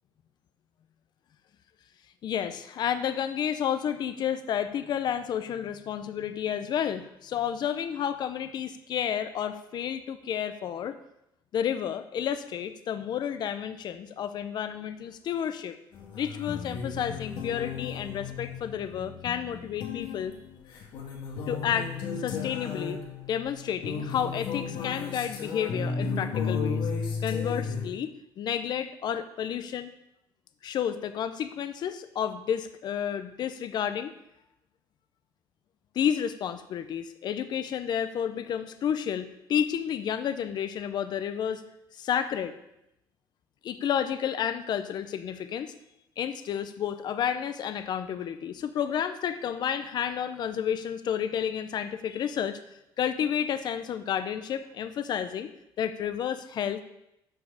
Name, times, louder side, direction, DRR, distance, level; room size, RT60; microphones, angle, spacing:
voice 1, 2.2-11.0 11.5-15.7 16.1-20.3 21.5-21.9 22.2-23.0 23.3-26.9 27.2-29.9 30.6-34.1 35.9-41.6 41.9-42.5 43.6-45.7 46.2-52.6 53.0-55.5 55.8-56.8, left 9 dB, 55° left, 11 dB, 0.7 m, -31 dB
sound 1, 15.9-27.9, left 5 dB, 70° left, 1.9 m, -34 dB
13.0 x 4.9 x 4.9 m, 0.83 s
cardioid pair, 110°, 9 cm